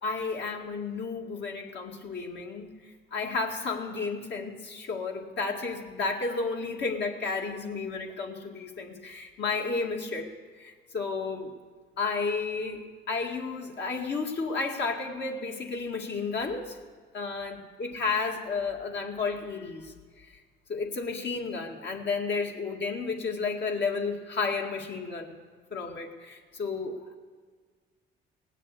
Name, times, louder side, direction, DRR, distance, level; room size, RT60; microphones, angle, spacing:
voice 1, 0.0-2.7 3.1-10.3 10.6-11.5 12.0-16.8 17.1-20.3 20.7-25.4 25.7-27.1, left 4 dB, 60° left, 1 dB, 2.1 m, -32 dB
18.5 x 7.5 x 8.4 m, 1.5 s
cardioid pair, 90°, 20 cm